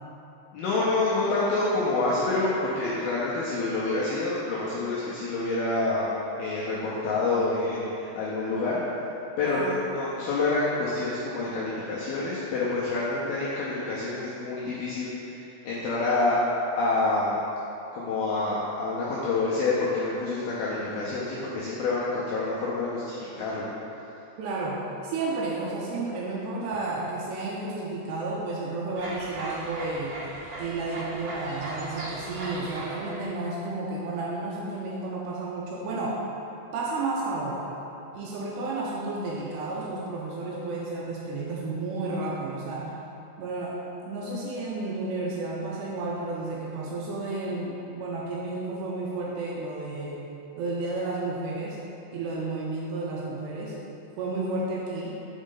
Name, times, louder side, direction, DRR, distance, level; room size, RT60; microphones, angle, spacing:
voice 1, 0.5-6.1 6.4-8.8 9.4-16.4 16.8-17.3 17.9-23.7, left 3 dB, 85° left, -7 dB, 2.2 m, -27 dB
voice 2, 9.4-9.7 24.4-30.2 30.6-36.2 36.7-37.6 38.1-42.9 43.4-43.8 44.0-50.3 50.6-51.8 52.1-53.7 54.2-55.1, right 2 dB, 85° right, -4 dB, 2.5 m, -32 dB
sound 1, 28.9-33.2, right 2 dB, 65° right, 2.4 m, -37 dB
6.3 x 5.1 x 3.7 m, 2.9 s
omnidirectional pair, 5.2 m